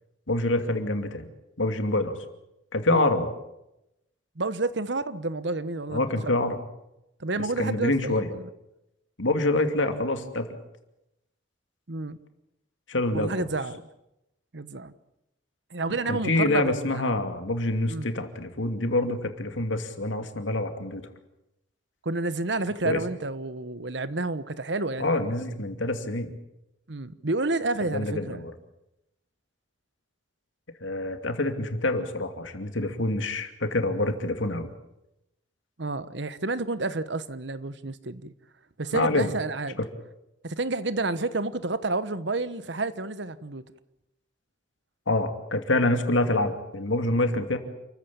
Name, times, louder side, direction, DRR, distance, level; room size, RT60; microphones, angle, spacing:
voice 1, 0.3-1.3 1.6-2.2 2.7-3.3 5.9-6.6 7.6-8.3 9.2-10.5 12.9-13.5 16.1-21.0 22.8-23.0 25.0-26.3 27.8-28.4 30.8-34.7 38.9-39.3 45.1-47.6, left 2 dB, 80° left, 2.7 m, -26 dB
voice 2, 4.4-6.4 7.2-8.4 11.9-12.2 13.1-13.8 14.5-14.9 15.7-17.2 17.9-18.1 22.0-25.3 26.9-28.4 35.8-38.3 38.8-39.8 40.4-43.6, right 3 dB, 65° right, 1.1 m, -30 dB
29.0 x 14.5 x 8.6 m
head